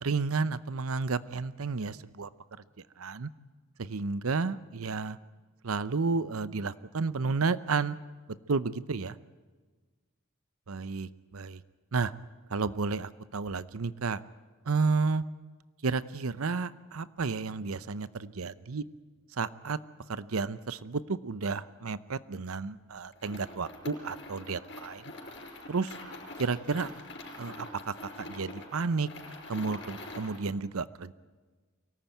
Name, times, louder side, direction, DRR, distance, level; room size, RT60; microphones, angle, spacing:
voice 1, 0.0-2.3 3.0-3.3 3.8-5.2 5.6-8.0 8.5-9.1 10.7-11.6 11.9-12.1 12.5-14.2 14.7-15.2 15.8-18.8 19.4-19.8 20.1-25.0 25.7-25.9 26.4-26.9 27.4-29.1 29.5-31.1, right 4 dB, 85° right, 16 dB, 0.7 m, -31 dB
sound 1, 23.1-30.5, left 1 dB, 55° left, 5.4 m, -45 dB
24.0 x 18.0 x 9.1 m, 1.4 s
head